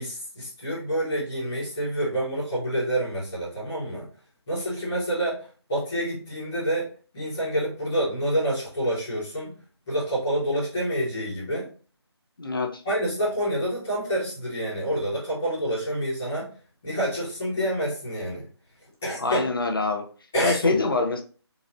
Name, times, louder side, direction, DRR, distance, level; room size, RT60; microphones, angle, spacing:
voice 1, 0.0-4.1 4.5-5.4 5.7-6.9 7.1-9.5 9.9-11.7 12.8-16.5 16.8-18.5 19.0-19.4 20.3-20.7, right 1 dB, 5° left, -13 dB, 0.4 m, -27 dB
voice 2, 12.4-12.8 19.2-20.1 20.4-21.2, left 3 dB, 55° left, 5 dB, 0.7 m, -25 dB
4.0 x 2.9 x 2.6 m, 0.38 s
figure-of-eight pair, 165°, 14 cm